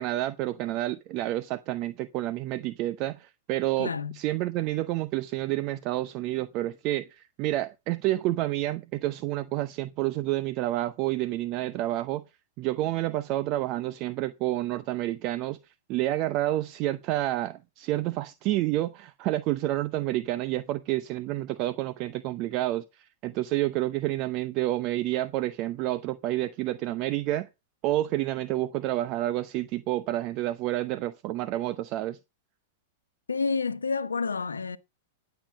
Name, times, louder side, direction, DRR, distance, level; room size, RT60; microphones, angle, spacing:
voice 1, 0.0-12.2 12.6-15.6 15.9-27.5 27.8-32.2, right 15 dB, 45° right, 0.7 m, -29 dB
voice 2, 3.8-4.2 33.3-34.8, left 4 dB, 85° left, 1.1 m, -29 dB
11.0 x 7.9 x 6.3 m
hypercardioid pair, 100°, 0 cm